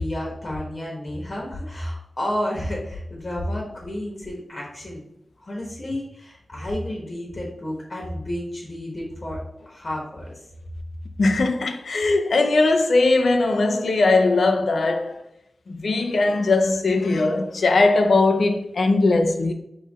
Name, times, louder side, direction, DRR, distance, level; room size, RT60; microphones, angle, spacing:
voice 1, 0.0-5.0 5.4-10.4, left 1 dB, 40° left, 1.3 m, -31 dB
voice 2, 11.2-15.2 15.7-19.5, left 3 dB, 80° left, 0.6 m, -20 dB
4.6 x 3.2 x 3.5 m
wide cardioid pair, 85°, 0 cm